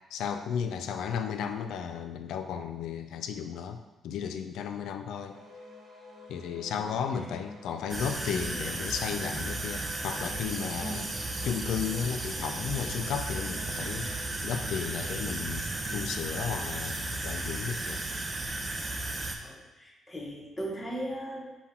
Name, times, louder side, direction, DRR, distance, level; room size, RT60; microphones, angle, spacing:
voice 1, 0.1-3.8 4.0-5.4 6.3-11.2 11.4-14.1 14.4-18.0, left 7 dB, 80° left, 7 dB, 0.3 m, -34 dB
sound 1, 5.3-14.2, left 2 dB, 90° right, 1.1 m, -50 dB
sound 2, 7.9-19.4, right 2 dB, 25° right, 0.5 m, -34 dB
voice 2, 10.8-11.1 19.4-21.6, right 1 dB, 15° left, -1 dB, 0.9 m, -38 dB
5.5 x 2.2 x 4.3 m, 1.1 s
cardioid pair, 90°, 0 cm